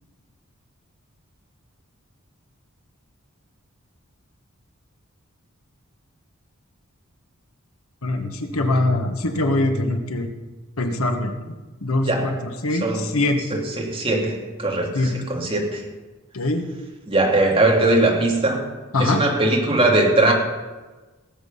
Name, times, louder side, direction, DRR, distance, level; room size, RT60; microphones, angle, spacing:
voice 1, 8.0-10.3 10.8-11.5 11.8-12.3 12.6-13.6 14.9-15.1 16.3-16.6 18.9-19.2, left 2 dB, 75° left, 5 dB, 1.5 m, -22 dB
voice 2, 12.0-12.4 12.8-13.2 13.5-15.8 17.1-18.7 19.0-20.3, right 2 dB, 25° right, -1 dB, 2.6 m, -20 dB
18.0 x 8.3 x 5.5 m, 1.2 s
head